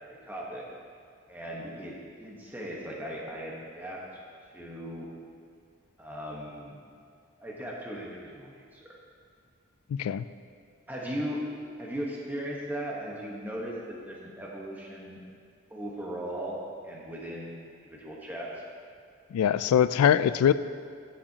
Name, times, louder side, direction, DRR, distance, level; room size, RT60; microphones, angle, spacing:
voice 1, 0.0-0.7 1.3-4.0 4.5-5.1 6.0-6.8 7.4-8.9 10.9-11.4 11.8-15.2 15.7-18.5, equal, 10° right, -4 dB, 1.1 m, -38 dB
voice 2, 9.9-10.3 19.3-20.5, left 9 dB, 90° left, 16 dB, 0.3 m, -22 dB
14.5 x 7.3 x 2.9 m, 2.3 s
head